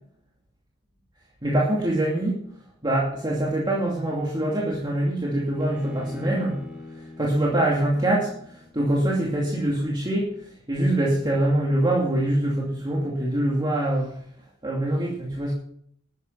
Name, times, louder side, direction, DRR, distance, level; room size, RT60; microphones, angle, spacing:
voice 1, 1.4-2.4 2.8-6.6 6.9-14.2 14.6-15.5, right 1 dB, 20° right, -4 dB, 2.6 m, -24 dB
Bowed string instrument, 5.6-8.9, left 2 dB, 5° right, 3.5 m, -41 dB
13.0 x 9.3 x 5.6 m, 0.64 s
head